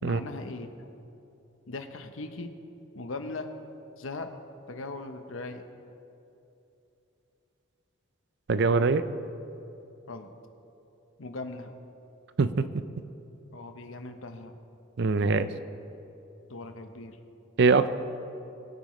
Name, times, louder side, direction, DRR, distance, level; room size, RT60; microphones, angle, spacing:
voice 1, 0.0-0.9 1.7-2.5 2.9-3.5 4.0-4.3 4.7-5.6 10.1-10.3 11.2-11.7 13.5-14.5 16.5-17.2, left 3 dB, 75° left, 7 dB, 0.9 m, -39 dB
voice 2, 8.5-9.0 12.4-12.8 15.0-15.5 17.6-17.9, right 4 dB, 55° right, 12 dB, 0.5 m, -23 dB
23.0 x 8.6 x 3.2 m, 2.9 s
head